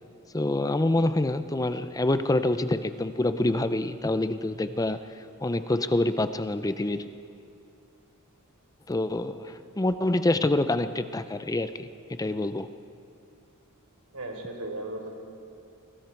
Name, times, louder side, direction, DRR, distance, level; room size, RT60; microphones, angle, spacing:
voice 1, 0.3-7.1 8.9-12.7, left 2 dB, 15° left, 11 dB, 0.5 m, -26 dB
voice 2, 14.1-15.1, right 2 dB, 80° right, 2 dB, 3.9 m, -36 dB
29.5 x 23.0 x 4.6 m, 2.6 s
head